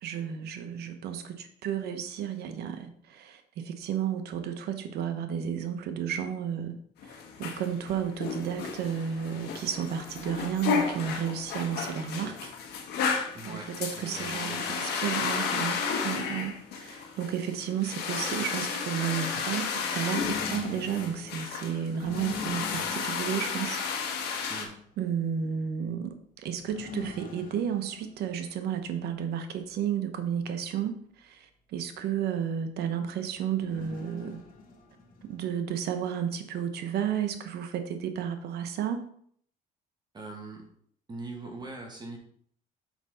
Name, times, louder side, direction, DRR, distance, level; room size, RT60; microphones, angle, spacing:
voice 1, 0.0-12.5 13.4-23.8 24.0-24.5 25.0-34.4 35.2-39.1, right 8 dB, 70° right, 8 dB, 1.0 m, -32 dB
sound 1, 7.0-24.6, left 6 dB, 75° left, 1.3 m, -33 dB
voice 2, 13.3-13.7 13.9-14.8 24.5-24.8 40.1-40.7 41.1-42.2, right 2 dB, 25° right, 1 dB, 1.7 m, -41 dB
sound 2, 19.8-24.6 26.6-28.8 29.1-29.2 31.7-31.8 33.3-35.7, left 4 dB, 55° left, 1.7 m, -43 dB
5.9 x 5.5 x 4.2 m, 0.63 s
cardioid pair, 110°, 17 cm